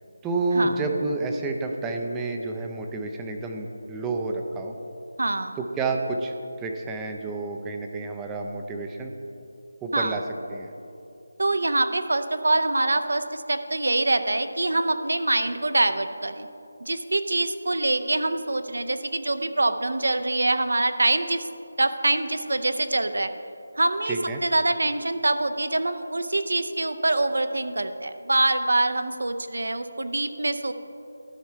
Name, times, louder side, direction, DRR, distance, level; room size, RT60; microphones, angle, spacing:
voice 1, 0.2-4.8 5.6-9.1 9.8-10.2 10.5-10.7 24.1-24.4, right 3 dB, 10° right, 3 dB, 0.4 m, -29 dB
voice 2, 5.2-5.6 9.9-10.2 11.4-16.5 16.8-21.5 21.8-23.3 23.8-30.7, right 2 dB, 80° right, 9 dB, 0.6 m, -25 dB
12.5 x 5.6 x 4.5 m, 2.6 s
figure-of-eight pair, 170°, 0 cm